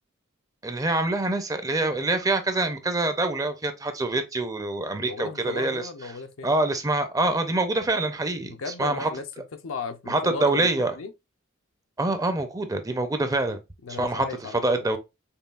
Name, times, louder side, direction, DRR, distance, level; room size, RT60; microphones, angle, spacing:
voice 1, 0.6-5.8 6.4-9.1 10.1-10.9 12.0-13.6 14.0-15.0, right 2 dB, 15° right, 0.5 m, -25 dB
voice 2, 5.0-6.5 8.5-9.2 9.6-11.1 13.8-14.9, left 4 dB, 70° left, 0.6 m, -36 dB
5.5 x 2.3 x 2.3 m
head